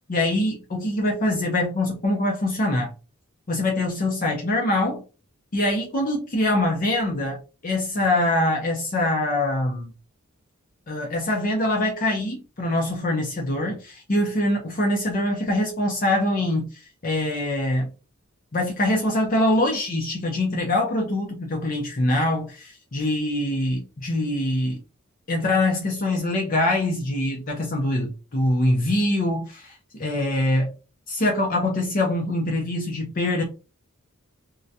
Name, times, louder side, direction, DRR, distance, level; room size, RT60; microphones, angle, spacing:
voice 1, 0.1-2.9 3.5-5.0 5.5-9.9 10.9-17.9 18.5-24.8 25.3-30.7 31.1-33.4, left 1 dB, 40° left, 0.6 m, -24 dB
3.7 x 2.1 x 2.7 m
head